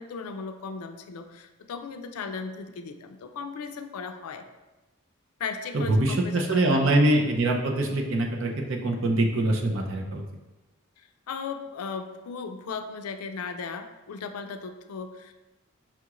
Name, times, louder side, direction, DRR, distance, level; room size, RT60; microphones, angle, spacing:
voice 1, 0.0-4.4 5.4-7.0 11.0-15.3, left 5 dB, 85° left, 7 dB, 0.4 m, -37 dB
voice 2, 5.7-10.2, right 1 dB, 60° right, 2 dB, 0.5 m, -24 dB
5.8 x 2.4 x 3.0 m, 1.1 s
head